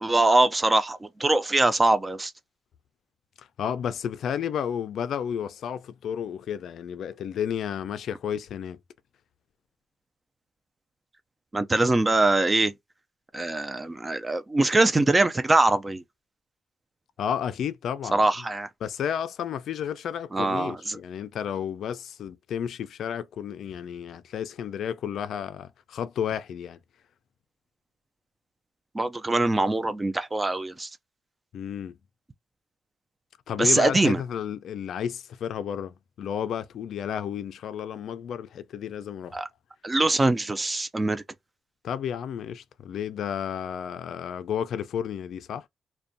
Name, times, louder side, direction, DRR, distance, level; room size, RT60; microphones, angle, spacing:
voice 1, 0.0-2.3 11.5-12.7 13.3-16.0 18.1-18.7 20.3-21.0 28.9-30.9 33.6-34.2 39.3-39.5 39.8-41.2, right 2 dB, 20° right, 0.3 m, -23 dB
voice 2, 3.6-8.8 17.2-18.2 18.8-26.8 31.5-31.9 33.5-39.4 41.8-45.6, left 8 dB, 75° left, 0.3 m, -32 dB
2.5 x 2.1 x 2.6 m
cardioid pair, 105°, 0 cm